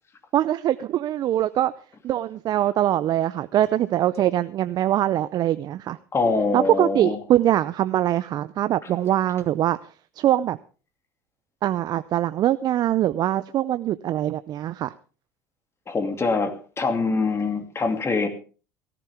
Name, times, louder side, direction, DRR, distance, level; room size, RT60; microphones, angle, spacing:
voice 1, 0.3-1.7 2.0-6.0 6.5-9.8 10.2-10.6 11.6-14.9, right 12 dB, 45° right, 14 dB, 0.6 m, -23 dB
voice 2, 6.1-7.2 8.8-8.9 15.9-18.3, left 3 dB, 30° left, 7 dB, 2.6 m, -24 dB
18.0 x 14.0 x 3.6 m, 0.36 s
hypercardioid pair, 75°, 9 cm